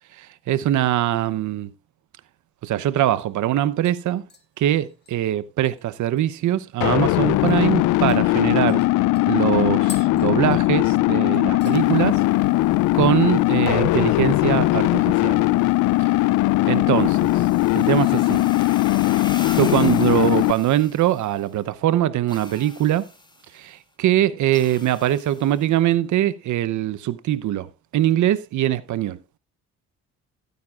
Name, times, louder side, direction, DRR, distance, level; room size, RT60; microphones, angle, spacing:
voice 1, 0.2-1.7 2.6-4.2 4.6-8.8 9.3-12.2 12.9-15.4 16.7-17.3 17.7-18.4 19.5-23.1 23.5-29.2, right 12 dB, 75° right, 0.9 m, -22 dB
sound 1, 3.8-6.7 7.0-7.1 7.5-7.6 8.1-11.1 11.3-11.8 12.2-12.6 12.9-13.0 15.1-15.7 16.0-16.7 17.1-17.4 18.0-18.9 19.2-19.3, left 4 dB, 35° left, 2.7 m, -47 dB
sound 2, 6.8-20.5, left 18 dB, 85° left, 0.5 m, -19 dB
sound 3, 11.6-21.7 22.3-23.7 24.5-25.7, left 2 dB, 15° left, 1.9 m, -43 dB
16.0 x 9.4 x 2.5 m
cardioid pair, 90°, 30 cm